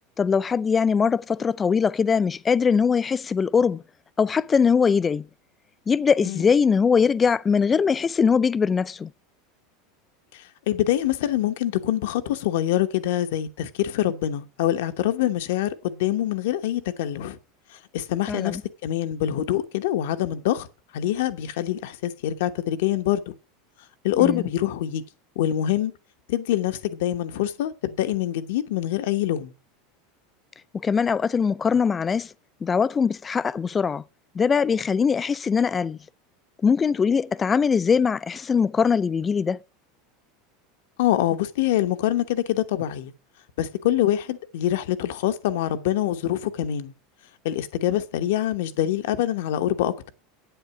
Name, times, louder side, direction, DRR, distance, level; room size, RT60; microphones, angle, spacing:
voice 1, 0.2-3.8 4.2-5.3 5.9-9.1 18.3-18.6 24.2-24.5 30.7-32.3 32.6-34.0 34.3-36.0 36.6-39.6, left 6 dB, 25° left, 0.5 m, -21 dB
voice 2, 10.3-17.4 17.7-20.7 20.9-23.3 24.0-25.0 25.4-25.9 26.3-29.5 41.0-43.1 43.6-46.9 47.4-50.0, left 12 dB, 65° left, 1.0 m, -25 dB
8.9 x 8.0 x 5.8 m
hypercardioid pair, 80°, 0 cm